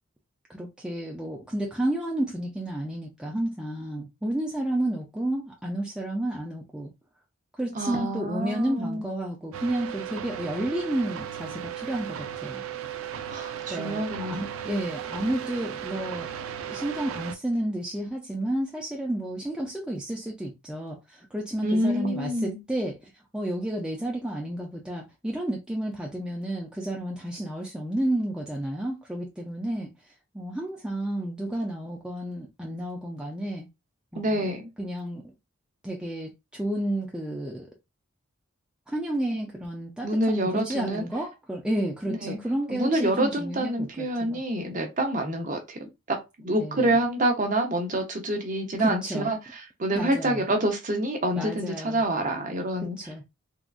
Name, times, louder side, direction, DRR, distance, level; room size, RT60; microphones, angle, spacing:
voice 1, 0.5-6.9 7.6-12.6 13.7-16.3 16.7-29.9 30.3-33.7 34.1-34.5 34.8-35.2 35.8-37.7 38.9-44.4 46.6-47.0 48.8-49.3 49.9-50.4 51.4-52.0 52.8-53.2, right 1 dB, 5° right, 0.3 m, -31 dB
voice 2, 7.7-9.1 13.3-14.8 21.6-22.6 34.1-34.7 40.0-41.0 42.1-42.4 42.7-46.2 46.4-53.0, right 1 dB, 35° right, 0.7 m, -27 dB
sound 1, 9.5-17.4, right 9 dB, 75° right, 0.4 m, -36 dB
3.6 x 2.2 x 2.4 m
head